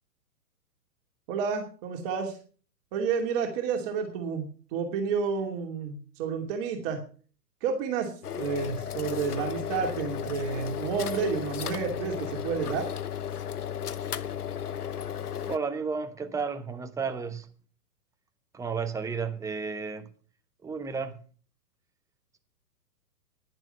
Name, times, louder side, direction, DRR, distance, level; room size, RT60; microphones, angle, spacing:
voice 1, 1.3-2.4 2.9-7.0 7.6-12.9, right 6 dB, 35° right, 2.7 m, -30 dB
sound 1, 8.2-15.6, left 9 dB, 70° left, 1.0 m, -34 dB
voice 2, 15.5-17.5 18.5-20.1 20.6-21.2, right 5 dB, 5° right, 1.0 m, -32 dB
11.0 x 11.0 x 5.6 m
figure-of-eight pair, 115°, 47 cm